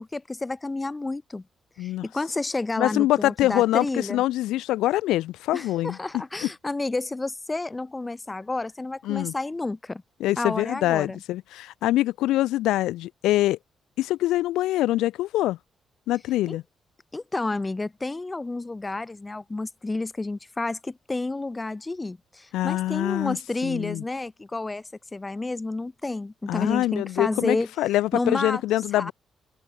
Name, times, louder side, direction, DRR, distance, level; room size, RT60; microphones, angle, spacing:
voice 1, 0.0-1.4 1.8-4.2 5.5-10.0 10.4-11.2 16.5-16.6 17.1-27.7 28.1-28.6 28.9-29.1, left 2 dB, 25° left, 4.5 m, -30 dB
voice 2, 2.8-6.0 6.4-6.5 9.1-9.3 10.2-13.6 14.0-15.6 16.1-16.6 22.5-23.4 23.6-24.0 26.5-29.1, left 15 dB, 75° left, 5.7 m, -24 dB
open air
hypercardioid pair, 45°, 0 cm